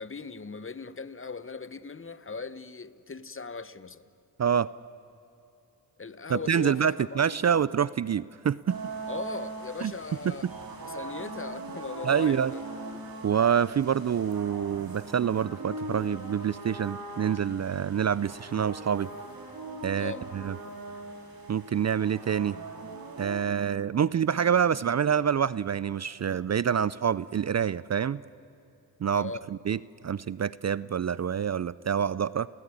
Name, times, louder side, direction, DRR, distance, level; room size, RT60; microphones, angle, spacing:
voice 1, 0.0-4.0 6.0-7.7 9.1-10.5 10.8-12.6 19.9-20.2 29.1-29.4, left 4 dB, 30° left, 15 dB, 1.1 m, -39 dB
voice 2, 4.4-4.7 6.3-8.8 9.8-9.9 10.3-10.5 12.0-12.5 13.2-19.1 19.8-20.6 21.5-22.6 23.2-28.2 29.0-29.3 29.7-29.8 30.0-32.5, right 8 dB, 40° right, 19 dB, 0.5 m, -26 dB
sound 1, 8.7-23.4, right 3 dB, 55° right, 4.3 m, -41 dB
28.5 x 17.0 x 9.8 m, 2.9 s
cardioid pair, 70°, 42 cm